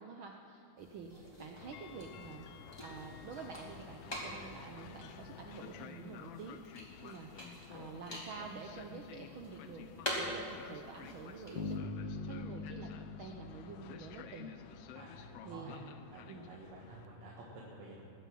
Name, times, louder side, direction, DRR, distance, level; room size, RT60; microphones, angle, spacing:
voice 1, 0.0-2.5 2.8-9.8 10.2-14.5 15.4-15.8 16.3-16.5, right 4 dB, 80° right, 2 dB, 1.1 m, -48 dB
sound 1, 0.8-11.8, equal, 10° left, 2.0 m, -46 dB
Train, 1.6-17.1, left 8 dB, 80° left, 1.4 m, -52 dB
sound 2, 11.6-14.6, left 4 dB, 55° left, 1.4 m, -42 dB
voice 2, 14.9-15.8 16.1-18.1, right 2 dB, 65° right, -4 dB, 2.7 m, -51 dB
20.5 x 7.3 x 7.6 m, 2.5 s
omnidirectional pair, 3.4 m